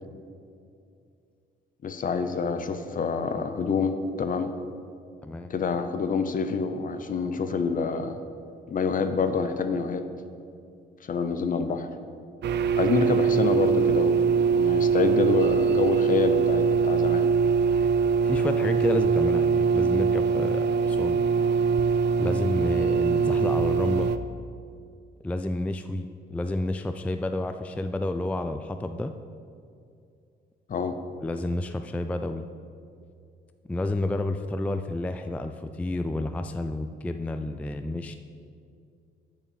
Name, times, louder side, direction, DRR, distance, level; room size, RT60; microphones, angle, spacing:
voice 1, 1.8-4.5 5.5-8.2 8.7-10.0 11.0-11.9 12.8-17.3 30.7-30.9, left 5 dB, 45° left, 9 dB, 0.7 m, -27 dB
sound 1, 12.4-24.2, right 6 dB, 60° right, 0.5 m, -22 dB
voice 2, 18.2-21.2 22.2-24.1 25.2-29.1 31.2-32.5 33.7-38.1, left 2 dB, 5° left, 8 dB, 0.3 m, -30 dB
6.8 x 5.5 x 7.2 m, 2.4 s
cardioid pair, 90°, 20 cm